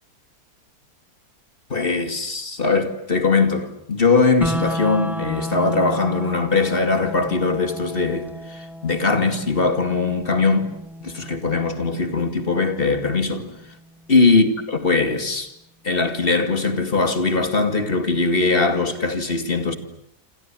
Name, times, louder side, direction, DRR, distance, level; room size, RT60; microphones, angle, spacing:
voice 1, 1.7-10.7 11.0-13.5 14.1-15.5 15.8-19.8, left 3 dB, 35° left, 2.5 m, -21 dB
sound 1, 4.4-14.4, equal, ahead, 1.3 m, -34 dB
28.0 x 27.0 x 7.6 m
omnidirectional pair, 1.7 m